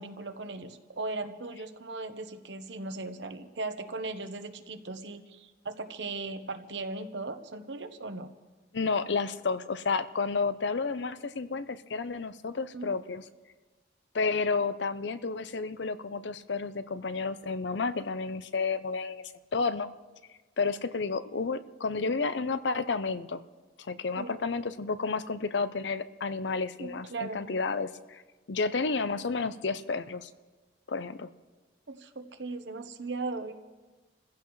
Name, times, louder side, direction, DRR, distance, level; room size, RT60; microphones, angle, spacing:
voice 1, 0.0-8.3 12.7-12.9 24.2-24.4 26.8-27.4 31.9-33.6, right 3 dB, 80° right, 7 dB, 1.1 m, -38 dB
voice 2, 8.7-13.2 14.1-19.2 19.5-19.9 20.6-23.4 23.8-28.2 28.5-30.3 30.9-31.3, left 4 dB, 80° left, 13 dB, 0.6 m, -31 dB
29.5 x 15.5 x 3.2 m, 1.3 s
head